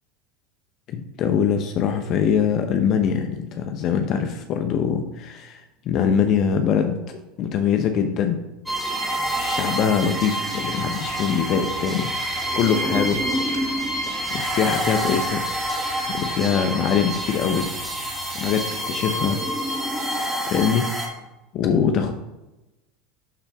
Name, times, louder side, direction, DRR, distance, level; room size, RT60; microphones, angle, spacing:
voice 1, 0.9-8.4 9.3-13.2 14.3-15.4 16.1-17.7 18.3-19.4 20.5-20.9 21.5-22.1, left 7 dB, 50° left, 6 dB, 0.8 m, -23 dB
sound 1, 8.7-21.1, right 1 dB, 5° right, 2.4 m, -27 dB
12.0 x 4.0 x 3.6 m, 1.0 s
hypercardioid pair, 100°, 0 cm